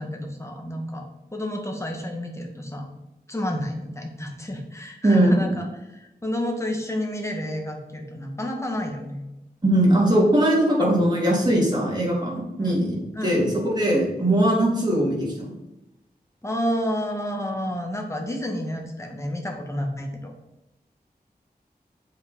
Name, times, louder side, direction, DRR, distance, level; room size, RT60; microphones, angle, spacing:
voice 1, 0.0-2.9 3.3-9.2 12.6-12.8 13.1-13.4 16.4-20.3, equal, 15° left, 2 dB, 1.9 m, -30 dB
voice 2, 5.0-5.5 9.6-13.0 13.2-15.5, right 1 dB, 25° right, -4 dB, 3.7 m, -20 dB
7.6 x 5.9 x 5.6 m, 0.94 s
wide cardioid pair, 65°, 17 cm